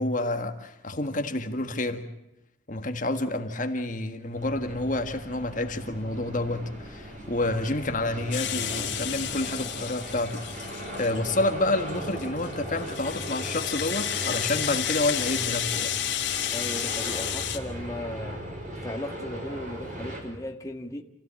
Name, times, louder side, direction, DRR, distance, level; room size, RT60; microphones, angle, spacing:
voice 1, 0.0-2.0 2.7-10.7 10.9-15.9, left 2 dB, 40° left, 5 dB, 1.6 m, -29 dB
sound 1, 4.3-20.2, right 1 dB, 45° right, 6.1 m, -38 dB
Rattle (instrument), 8.3-11.3 11.9-17.6, left 11 dB, 70° left, 2.8 m, -31 dB
voice 2, 16.5-18.4 18.7-21.0, left 1 dB, 15° left, 2 dB, 1.7 m, -36 dB
28.5 x 16.0 x 8.9 m, 0.91 s
head